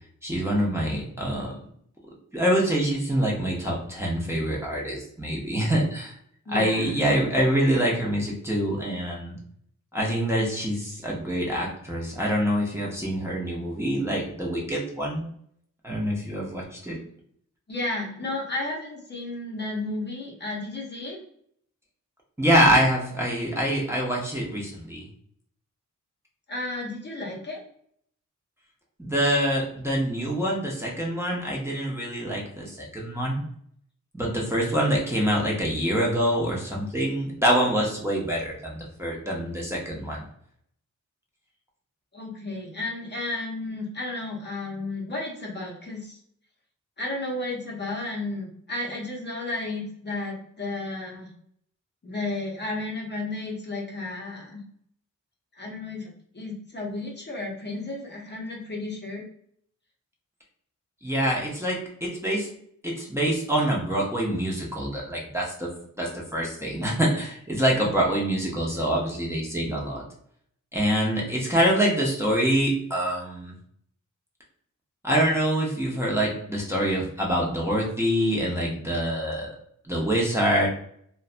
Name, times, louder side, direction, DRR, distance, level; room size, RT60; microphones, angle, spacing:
voice 1, 0.2-1.5 2.3-6.1 6.5-9.4 9.9-15.3 15.8-17.0 22.4-25.0 29.0-33.5 34.1-40.2 61.0-62.5 62.8-65.7 66.0-70.0 70.7-73.5 75.0-79.5 79.8-80.7, equal, 10° right, -4 dB, 0.7 m, -25 dB
voice 2, 6.5-6.9 17.7-21.2 26.5-27.6 42.1-46.2 47.0-51.3 52.0-54.6 55.5-56.1 56.3-59.2, left 2 dB, 35° left, -2 dB, 0.7 m, -33 dB
2.5 x 2.2 x 2.4 m, 0.65 s
cardioid pair, 80°, 32 cm